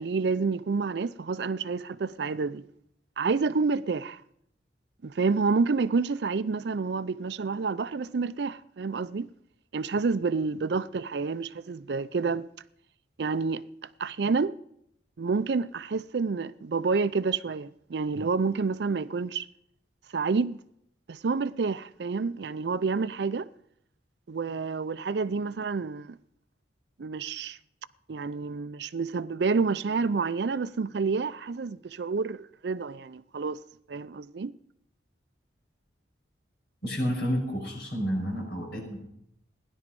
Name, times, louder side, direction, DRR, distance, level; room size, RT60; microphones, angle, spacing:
voice 1, 0.0-2.6 3.2-4.2 5.0-9.3 9.7-12.5 13.2-13.6 14.0-14.5 15.2-19.5 20.1-20.6 21.1-23.5 24.3-26.2 27.0-27.6 28.1-33.6 33.9-34.5, right 4 dB, 65° right, 0.5 m, -29 dB
voice 2, 36.8-39.0, equal, 60° left, 5.9 m, -30 dB
16.0 x 11.0 x 5.3 m
head